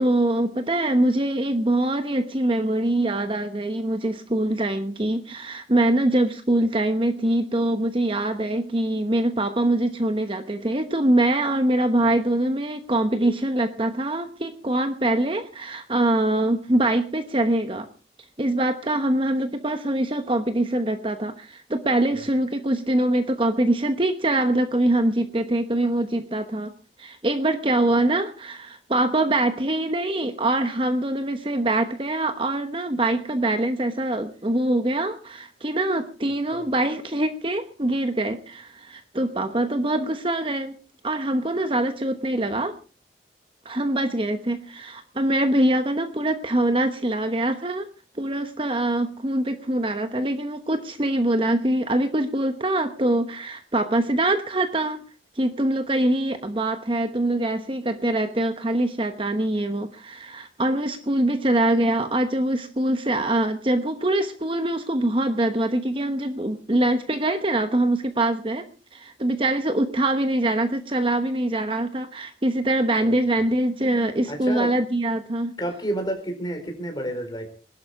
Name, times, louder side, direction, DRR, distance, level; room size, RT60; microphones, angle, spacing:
voice 1, 0.0-17.9 18.4-26.7 27.0-40.8 41.0-42.8 43.6-47.9 48.2-55.0 55.4-68.7 68.9-75.5, right 1 dB, 30° right, 8 dB, 1.0 m, -24 dB
voice 2, 74.3-74.7 75.6-77.5, right 1 dB, 25° left, 5 dB, 4.2 m, -31 dB
20.5 x 12.0 x 4.8 m, 0.38 s
head